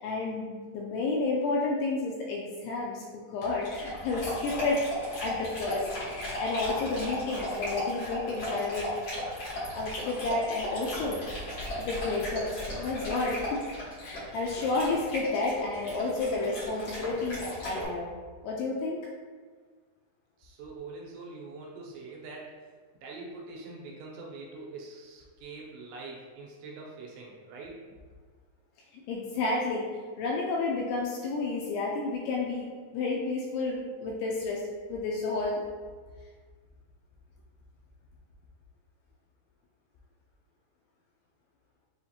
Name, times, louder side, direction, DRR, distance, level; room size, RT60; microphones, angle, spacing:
voice 1, 0.0-4.8 5.2-8.9 9.7-11.2 11.8-13.6 14.0-18.1 18.4-19.0 29.1-29.9 30.2-34.6 34.9-35.7, left 3 dB, 85° left, -2 dB, 2.4 m, -31 dB
Dog, 3.6-17.8, left 1 dB, 65° left, 1.5 m, -36 dB
voice 2, 20.4-27.9, right 3 dB, 85° right, -2 dB, 2.7 m, -44 dB
7.0 x 2.5 x 2.8 m, 1.5 s
omnidirectional pair, 5.1 m